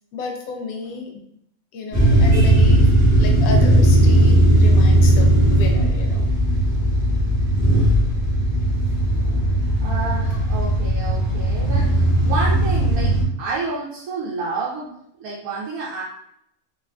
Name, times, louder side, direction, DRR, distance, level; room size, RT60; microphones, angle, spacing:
voice 1, 0.1-1.2 1.7-2.9 3.2-6.3 7.7-7.8, left 2 dB, 80° left, 2 dB, 1.0 m, -32 dB
sound 1, 1.9-13.2, right 1 dB, 5° right, 0.7 m, -17 dB
voice 2, 9.8-14.9 15.2-16.0, right 3 dB, 75° right, -6 dB, 1.0 m, -29 dB
3.1 x 2.4 x 2.2 m, 0.73 s
omnidirectional pair, 1.5 m